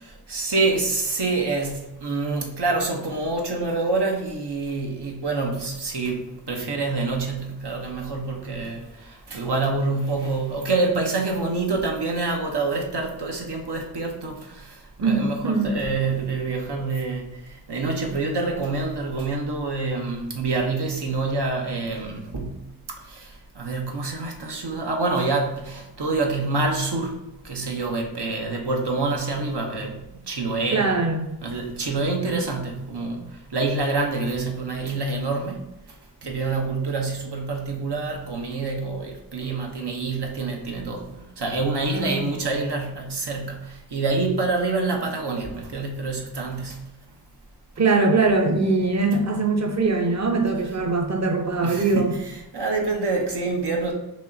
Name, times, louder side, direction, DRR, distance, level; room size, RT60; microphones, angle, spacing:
voice 1, 0.0-22.7 23.0-31.0 31.4-35.7 36.2-46.9 51.6-53.9, right 3 dB, 80° right, 1 dB, 0.9 m, -27 dB
voice 2, 15.0-15.8 30.7-31.3 41.9-42.3 47.8-52.2, right 3 dB, 45° right, 3 dB, 0.7 m, -22 dB
5.3 x 2.9 x 2.6 m, 0.94 s
wide cardioid pair, 65°, 40 cm